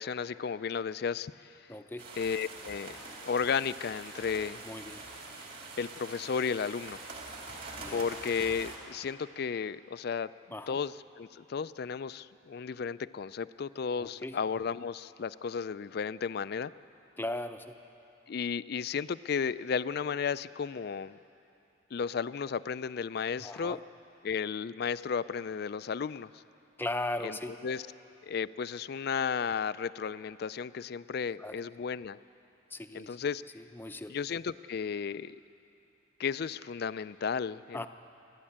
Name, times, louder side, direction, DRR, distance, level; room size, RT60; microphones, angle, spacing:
voice 1, 0.0-1.5 2.2-3.0 3.2-4.6 5.8-7.0 7.9-10.3 10.7-16.7 18.3-21.2 21.9-23.8 24.2-26.4 27.2-27.4 27.6-27.8 28.2-32.2 32.9-33.4 34.1-35.4 36.2-37.9, left 6 dB, 55° left, 16 dB, 0.4 m, -34 dB
voice 2, 1.7-2.1 4.6-5.0 7.8-8.0 10.5-10.8 14.0-14.4 17.2-17.7 23.4-23.8 26.8-27.5 31.4-31.5 32.7-33.2 33.5-34.1 37.7-37.9, left 1 dB, 10° left, 8 dB, 0.6 m, -37 dB
sound 1, 2.0-8.8, right 3 dB, 50° right, 3.0 m, -44 dB
28.5 x 11.5 x 8.7 m, 2.8 s
head